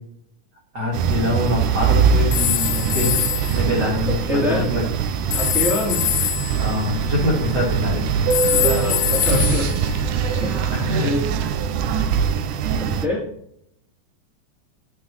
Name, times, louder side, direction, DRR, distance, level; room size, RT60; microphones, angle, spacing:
voice 1, 0.7-3.1 3.5-4.8 6.6-8.1 8.4-8.8 9.5-9.6 10.7-11.1 11.4-11.5 12.6-12.7, left 1 dB, 40° right, -5 dB, 1.9 m, -24 dB
sound 1, 0.9-13.1, right 6 dB, 85° right, 2.1 m, -22 dB
sound 2, 2.3-3.6 5.3-7.8 8.3-10.6, left 11 dB, 80° left, 1.9 m, -24 dB
voice 2, 4.3-4.7 5.3-6.0 8.5-9.7 10.4-10.7 11.0-11.3 12.8-13.2, left 1 dB, ahead, -8 dB, 3.1 m, -25 dB
10.0 x 6.4 x 3.0 m, 0.74 s
omnidirectional pair, 3.5 m